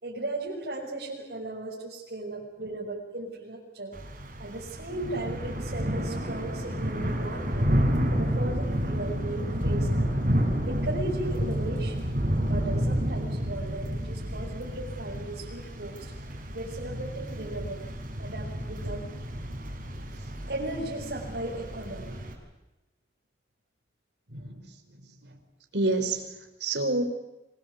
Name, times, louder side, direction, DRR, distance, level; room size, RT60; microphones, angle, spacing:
voice 1, 0.0-4.0 4.4-7.7 8.1-10.1 10.7-12.1 12.4-16.1 16.5-17.8 18.2-19.1 20.5-22.2, right 2 dB, 70° right, -5 dB, 6.7 m, -36 dB
Thunder / Rain, 3.9-22.3, equal, 50° right, 6.8 m, -30 dB
voice 2, 24.3-25.4 25.7-27.0, right 2 dB, 85° right, 6 dB, 5.1 m, -30 dB
26.5 x 21.0 x 8.5 m, 0.97 s
head